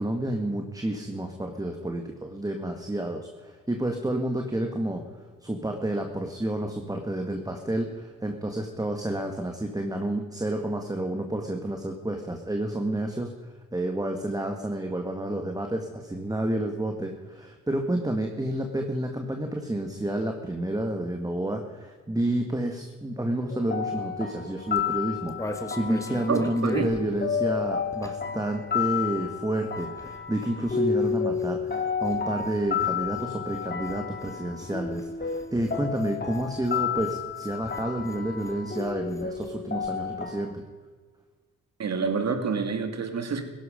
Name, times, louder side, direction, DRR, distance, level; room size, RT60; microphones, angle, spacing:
voice 1, 0.0-5.0 5.4-40.6, right 1 dB, 10° right, 4 dB, 1.7 m, -30 dB
sound 1, 23.5-40.5, left 6 dB, 30° left, 1.9 m, -31 dB
sound 2, 24.7-28.4 28.6-39.6 39.8-39.9 40.1-40.5, left 1 dB, 10° left, 1.7 m, -42 dB
voice 2, 26.3-26.9 41.8-43.4, right 5 dB, 50° right, 7 dB, 2.3 m, -27 dB
16.0 x 12.0 x 5.1 m, 1.5 s
supercardioid pair, 70°, 34 cm